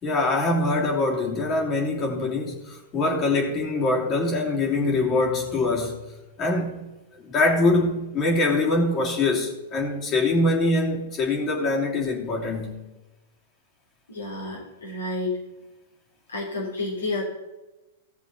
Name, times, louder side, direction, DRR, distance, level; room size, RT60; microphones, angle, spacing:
voice 1, 0.0-6.0 6.4-6.8 7.1-12.7, left 2 dB, 30° left, 2.9 m, -23 dB
voice 2, 14.1-15.3 16.3-17.2, left 2 dB, 90° left, 3.4 m, -30 dB
16.0 x 6.7 x 4.2 m
hypercardioid pair, 105°, 0 cm